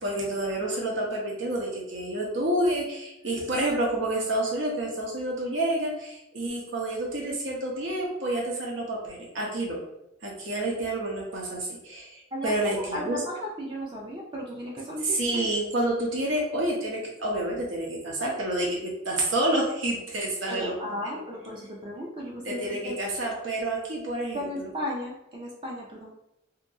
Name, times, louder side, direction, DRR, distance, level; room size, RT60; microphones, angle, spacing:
voice 1, 0.0-9.8 10.2-13.2 15.0-21.2 22.4-24.7, right 1 dB, 85° right, -2 dB, 0.8 m, -29 dB
voice 2, 12.3-15.5 20.5-23.0 24.3-26.1, left 1 dB, 25° right, -3 dB, 0.4 m, -35 dB
2.8 x 2.6 x 2.6 m, 0.87 s
head